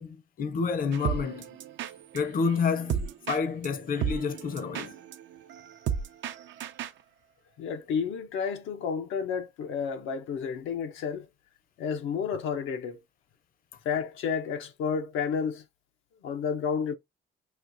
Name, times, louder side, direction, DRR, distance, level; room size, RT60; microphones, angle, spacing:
voice 1, 0.0-1.5 2.1-5.0, left 5 dB, 45° left, 0.6 m, -29 dB
sound 1, 0.9-7.0, right 8 dB, 70° right, 0.5 m, -35 dB
voice 2, 7.6-11.3 11.8-13.0 13.8-15.6 16.2-16.9, left 6 dB, 85° left, 0.7 m, -31 dB
6.1 x 2.3 x 2.6 m
cardioid pair, 90°, 20 cm